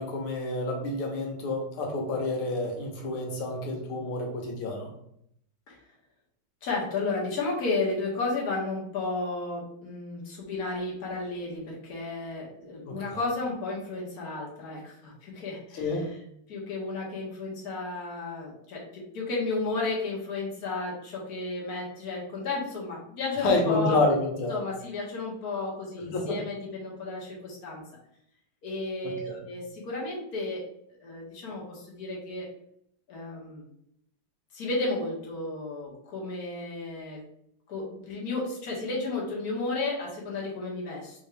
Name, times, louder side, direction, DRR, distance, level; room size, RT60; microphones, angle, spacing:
voice 1, 0.0-4.9 12.9-13.0 15.7-16.1 23.4-24.6 26.0-26.4 29.0-29.4, left 2 dB, 80° left, 1 dB, 1.8 m, -29 dB
voice 2, 6.6-16.1 16.5-24.0 24.5-27.8 28.6-30.6 31.0-32.5 33.1-33.7 34.5-37.2 37.7-41.2, left 3 dB, 50° left, -4 dB, 1.5 m, -33 dB
4.5 x 2.7 x 3.3 m, 0.72 s
omnidirectional pair, 2.4 m